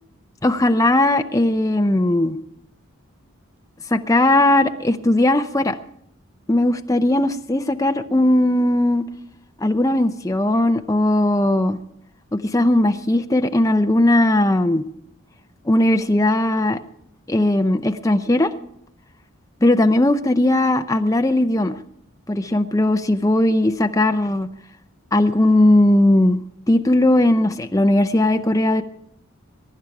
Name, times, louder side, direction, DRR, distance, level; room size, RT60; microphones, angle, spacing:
voice 1, 0.4-2.4 3.9-5.8 6.5-9.1 9.6-11.8 12.3-14.8 15.7-16.8 17.3-18.5 19.6-21.8 22.3-24.5 25.1-26.4 26.7-28.8, left 1 dB, 15° left, 7 dB, 0.6 m, -18 dB
22.5 x 10.5 x 4.8 m, 0.74 s
head